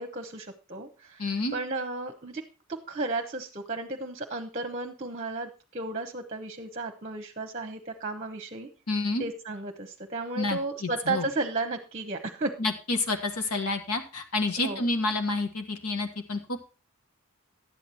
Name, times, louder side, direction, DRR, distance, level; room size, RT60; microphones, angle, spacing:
voice 1, 0.0-1.3 1.5-2.4 2.9-8.7 9.2-12.6 14.6-14.8, right 2 dB, 30° right, 6 dB, 0.9 m, -34 dB
voice 2, 1.2-1.5 8.9-9.2 10.3-11.2 12.6-16.6, left 2 dB, 85° left, 6 dB, 1.6 m, -29 dB
11.5 x 8.6 x 4.4 m, 0.33 s
head